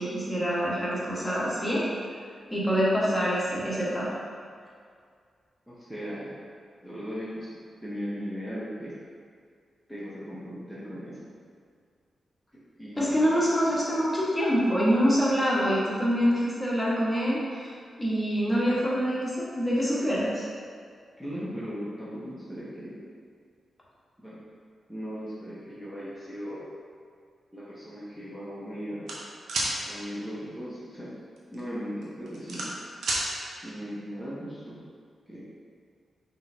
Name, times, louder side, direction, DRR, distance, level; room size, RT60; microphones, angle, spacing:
voice 1, 0.0-1.9 2.5-4.1 13.0-17.7 18.0-20.4, equal, 15° left, -8 dB, 1.5 m, -25 dB
voice 2, 5.7-6.3 6.8-7.5 7.8-8.9 9.9-11.2 12.5-13.3 21.2-23.0 24.2-24.4 24.9-26.7 27.5-29.1 29.8-31.1 31.5-32.7 33.6-34.8 35.3-35.5, equal, 5° right, -10 dB, 1.1 m, -37 dB
sound 1, 29.1-29.7 31.4-31.6 32.0-33.2, right 2 dB, 80° right, 0.8 m, -29 dB
5.3 x 3.3 x 2.8 m, 2.1 s
cardioid pair, 60°, 0 cm